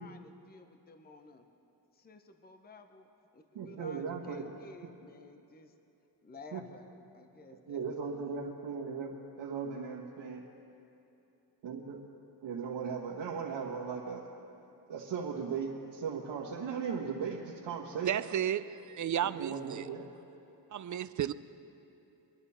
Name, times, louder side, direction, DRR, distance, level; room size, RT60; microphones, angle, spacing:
voice 1, 0.0-1.5 1.9-3.1 3.3-5.7 6.2-8.0, left 3 dB, 20° left, 7 dB, 0.7 m, -53 dB
voice 2, 3.5-4.4 6.5-6.6 7.5-10.4 11.6-12.0 12.4-14.2 14.9-18.2 19.2-20.1, right 6 dB, 90° right, -4 dB, 1.4 m, -37 dB
voice 3, 18.0-19.9 20.7-21.3, right 10 dB, 45° right, 15 dB, 0.4 m, -33 dB
24.5 x 11.0 x 4.3 m, 2.9 s
cardioid pair, 120°, 42 cm